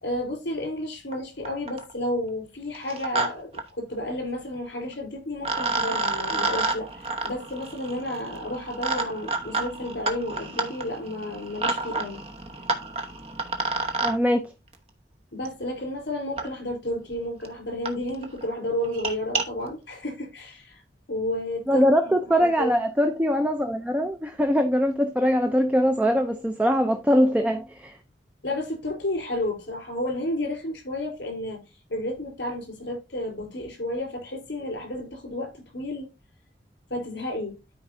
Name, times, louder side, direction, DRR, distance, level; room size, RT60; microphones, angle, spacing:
voice 1, 0.0-12.2 15.3-20.8 21.1-21.8 22.3-22.7 28.4-31.6 31.9-36.1 36.9-37.6, left 1 dB, 75° left, 3.8 m, -31 dB
sound 1, 1.1-1.2 1.5-1.9 2.7-3.3 3.5-3.6 4.9-5.0 5.4-14.1 15.5-15.6 16.4-16.5 17.1-17.2 17.4-17.5 17.9-18.0 18.2-18.4 18.8-19.4, right 3 dB, 35° right, 1.1 m, -29 dB
voice 2, 14.0-14.4 21.7-27.9, equal, 10° right, 0.5 m, -22 dB
12.5 x 4.6 x 2.6 m
head